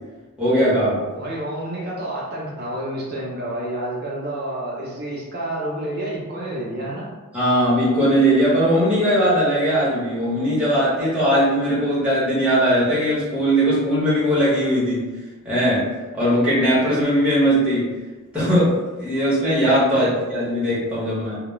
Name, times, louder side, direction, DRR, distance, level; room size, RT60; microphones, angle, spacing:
voice 1, 0.4-1.0 7.3-15.2 15.4-18.0 18.3-21.4, equal, 5° right, -9 dB, 0.8 m, -19 dB
voice 2, 1.1-7.1 19.8-20.1, right 1 dB, 45° right, -4 dB, 0.5 m, -29 dB
2.2 x 2.0 x 2.9 m, 1.2 s
head